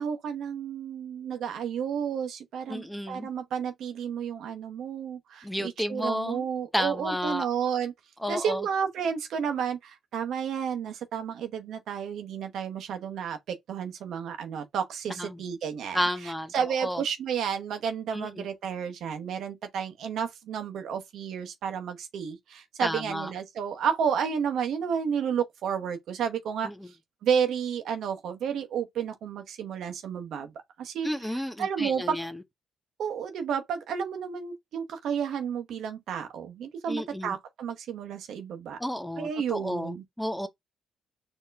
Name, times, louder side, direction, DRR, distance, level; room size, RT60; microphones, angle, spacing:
voice 1, 0.0-7.9 8.3-26.7 27.2-30.5 30.8-31.1 31.6-32.2 33.0-38.8 39.2-40.0, right 7 dB, 75° right, 0.9 m, -31 dB
voice 2, 2.7-3.3 5.4-6.5 6.7-7.5 8.2-8.7 15.2-15.4 15.9-17.0 18.1-18.5 22.8-23.3 26.6-26.9 31.0-32.3 36.9-37.3 38.8-40.5, equal, 5° left, 0.6 m, -32 dB
4.5 x 2.9 x 3.4 m
cardioid pair, 90°, 0 cm